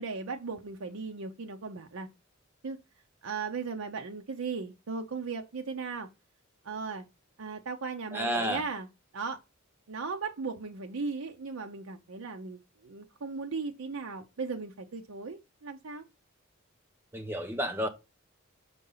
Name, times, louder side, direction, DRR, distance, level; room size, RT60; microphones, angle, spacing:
voice 1, 0.0-2.1 2.6-2.8 3.2-6.1 6.6-7.0 7.4-8.9 9.1-9.4 9.9-16.0, right 4 dB, 75° right, 0.7 m, -37 dB
voice 2, 8.1-8.6 17.1-17.9, equal, 10° right, 1.0 m, -31 dB
5.3 x 4.8 x 5.5 m
head